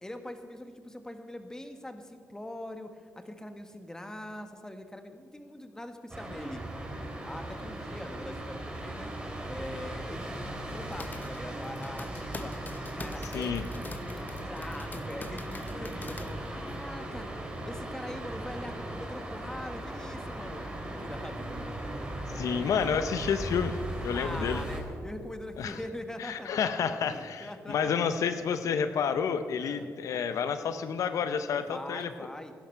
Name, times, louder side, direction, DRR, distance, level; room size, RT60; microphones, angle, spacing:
voice 1, 0.0-6.6 7.2-9.1 9.5-17.3 17.6-21.8 24.1-28.4 29.6-29.9 31.6-32.5, left 1 dB, 10° left, 7 dB, 1.3 m, -43 dB
sound 1, 6.1-24.8, right 1 dB, 20° right, 3.3 m, -38 dB
sound 2, 10.6-16.9, left 3 dB, 35° left, 0.8 m, -45 dB
voice 2, 22.3-24.6 25.6-25.8 26.2-32.1, left 7 dB, 75° left, 10 dB, 0.7 m, -30 dB
sound 3, 24.4-25.2 25.9-26.0 26.3-27.1, right 1 dB, 45° right, 3.9 m, -53 dB
16.0 x 11.5 x 4.5 m, 2.1 s
cardioid pair, 75°, 6 cm